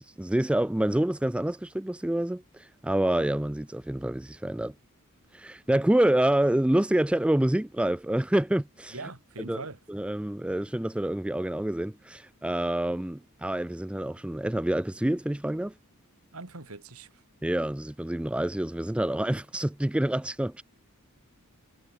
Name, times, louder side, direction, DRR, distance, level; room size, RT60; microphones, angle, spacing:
voice 1, 0.0-4.7 5.3-8.9 9.5-9.6 9.9-15.7 17.4-20.6, right 1 dB, 5° right, 0.3 m, -27 dB
voice 2, 8.9-9.8 16.3-17.2, right 3 dB, 85° right, 2.6 m, -41 dB
head